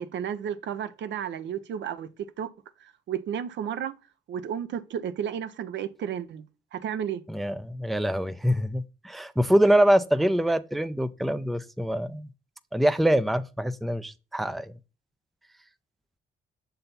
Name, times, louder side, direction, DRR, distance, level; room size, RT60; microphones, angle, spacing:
voice 1, 0.0-2.1 2.4-2.5 2.8-4.0 4.3-6.4 6.7-7.2, right 8 dB, 65° right, 0.6 m, -32 dB
voice 2, 7.3-12.3 12.7-14.7, equal, ahead, 0.4 m, -24 dB
6.6 x 4.0 x 4.0 m
cardioid pair, 90°, 20 cm